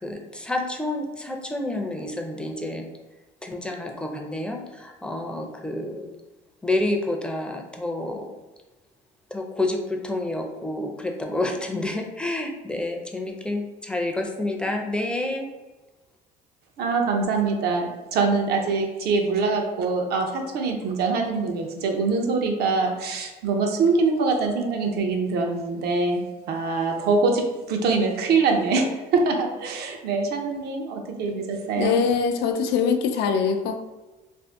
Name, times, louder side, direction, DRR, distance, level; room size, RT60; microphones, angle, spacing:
voice 1, 0.0-2.9 3.4-6.1 6.6-8.3 9.3-15.5, left 2 dB, 5° left, 2 dB, 0.4 m, -29 dB
voice 2, 16.8-32.0, right 4 dB, 70° right, 3 dB, 0.6 m, -24 dB
voice 3, 31.8-33.8, left 6 dB, 80° left, 6 dB, 0.4 m, -22 dB
2.6 x 2.4 x 3.5 m, 1.1 s
cardioid pair, 110°, 17 cm